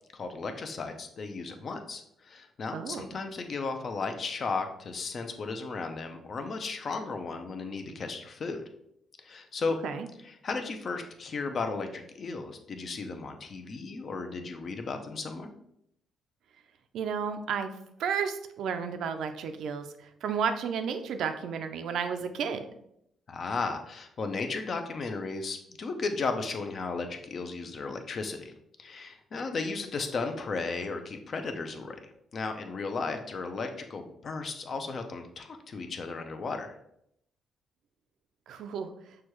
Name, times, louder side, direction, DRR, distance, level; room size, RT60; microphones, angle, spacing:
voice 1, 0.1-8.6 9.2-9.8 10.2-15.5 23.3-28.5 28.8-32.0 32.3-36.7, left 4 dB, 50° left, 6 dB, 0.6 m, -35 dB
voice 2, 2.7-3.1 9.8-10.1 16.9-17.7 18.0-22.7 38.5-38.9, right 6 dB, 75° right, 8 dB, 0.4 m, -32 dB
6.2 x 2.3 x 3.0 m, 0.76 s
cardioid pair, 90°, 0 cm